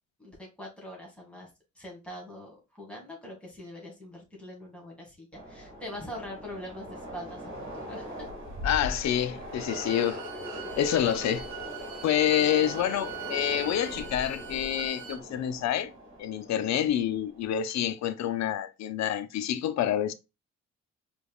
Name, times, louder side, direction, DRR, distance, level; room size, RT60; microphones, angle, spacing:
voice 1, 0.2-1.5 1.8-7.4 7.7-8.3, left 1 dB, 5° left, 2.1 m, -43 dB
Train, 5.3-17.6, left 1 dB, 40° right, 1.6 m, -40 dB
voice 2, 8.6-10.2 10.8-11.5 12.0-15.9 16.2-20.1, left 10 dB, 65° left, 0.6 m, -27 dB
Bowed string instrument, 9.5-15.2, right 11 dB, 70° right, 1.0 m, -43 dB
5.0 x 3.4 x 2.3 m
cardioid pair, 90°, 30 cm